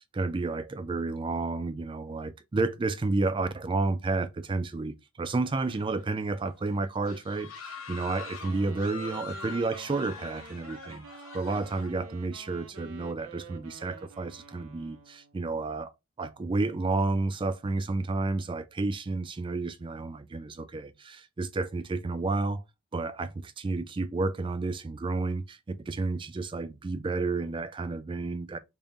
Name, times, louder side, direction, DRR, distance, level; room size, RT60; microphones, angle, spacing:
voice 1, 0.1-11.1 11.3-15.9 16.2-22.6 22.9-28.6, right 3 dB, 25° right, 0.3 m, -31 dB
sound 1, 5.3-6.1 6.5-6.6 7.0-11.9, left 5 dB, 75° left, 1.1 m, -44 dB
Wind instrument woodwind instrument, 8.0-15.4, right 4 dB, 80° right, 0.6 m, -49 dB
3.6 x 2.2 x 4.0 m
head